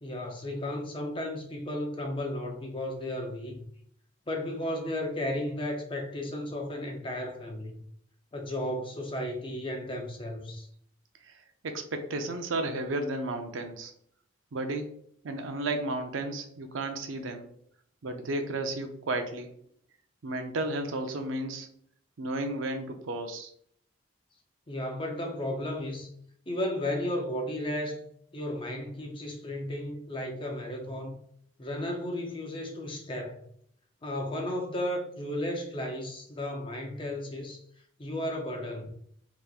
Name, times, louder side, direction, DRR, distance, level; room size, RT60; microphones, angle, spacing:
voice 1, 0.0-3.6 4.3-7.7 8.3-10.7 24.7-26.1 26.5-28.0 28.3-31.2 31.6-33.4 34.0-37.6 38.0-38.9, left 1 dB, 25° left, 0.6 m, -34 dB
voice 2, 11.2-13.9 14.5-14.9 15.2-17.5 18.0-19.5 20.2-21.7 22.2-23.5, right 2 dB, 90° right, 0.5 m, -33 dB
3.5 x 3.0 x 2.3 m
head